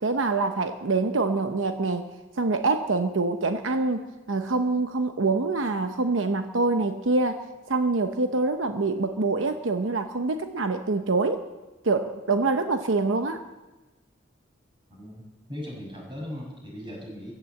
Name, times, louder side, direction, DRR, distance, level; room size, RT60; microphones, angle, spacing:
voice 1, 0.0-2.1 2.4-7.4 7.7-11.5 11.8-13.4, right 3 dB, 80° right, 7 dB, 0.9 m, -25 dB
voice 2, 14.9-17.3, left 1 dB, 25° right, -2 dB, 6.2 m, -38 dB
15.5 x 12.5 x 7.7 m, 1.1 s
head